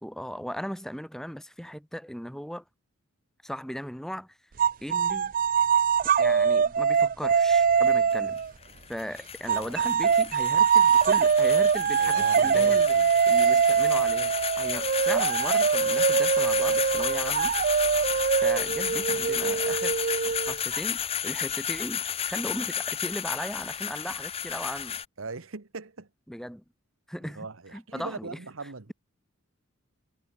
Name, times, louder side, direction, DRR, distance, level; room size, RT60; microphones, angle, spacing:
voice 1, 0.0-2.6 3.4-4.4 4.8-5.3 6.2-8.4 8.9-12.9 13.3-17.5 18.4-20.0 20.2-25.0 26.3-26.6 27.1-27.5 27.7-28.3, equal, ahead, 3.0 m, -37 dB
sound 1, 4.6-8.5 9.5-20.8, right 6 dB, 40° right, 0.4 m, -23 dB
sound 2, 7.5-25.0, left 8 dB, 30° left, 0.7 m, -33 dB
voice 2, 9.5-9.8 12.0-13.1 25.2-26.1 27.2-28.9, right 3 dB, 65° right, 1.3 m, -39 dB
head